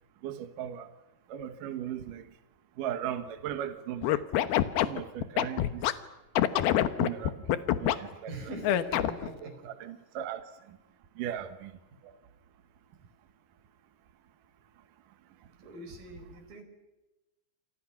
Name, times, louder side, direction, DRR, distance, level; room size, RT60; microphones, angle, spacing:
voice 1, 0.2-0.9 1.3-2.3 2.8-4.2 4.8-5.8 6.5-8.3 9.4-10.8 11.2-11.7, right 10 dB, 75° right, 1.9 m, -38 dB
Scratching (performance technique), 4.0-5.9 6.4-8.0 8.6-9.3, left 12 dB, 75° left, 2.3 m, -25 dB
voice 2, 8.3-9.7 11.9-12.1 15.6-16.6, right 2 dB, 45° right, 6.4 m, -43 dB
29.5 x 27.0 x 5.9 m
omnidirectional pair, 5.9 m